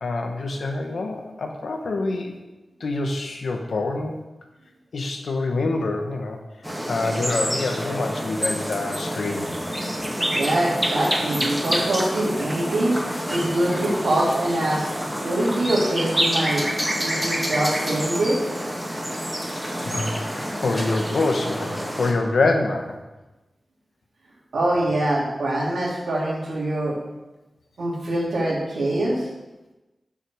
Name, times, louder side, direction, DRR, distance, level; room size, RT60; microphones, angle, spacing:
voice 1, 0.0-2.4 2.8-4.2 4.9-6.4 6.9-9.5 19.8-23.0, left 3 dB, 80° left, 3 dB, 1.2 m, -26 dB
sound 1, 6.6-22.1, equal, 5° right, 2.1 m, -27 dB
voice 2, 10.3-12.9 13.3-14.9 15.2-18.4 24.5-27.0 27.8-29.3, right 1 dB, 90° right, -5 dB, 2.8 m, -24 dB
7.0 x 6.1 x 6.3 m, 1.1 s
cardioid pair, 60°, 0 cm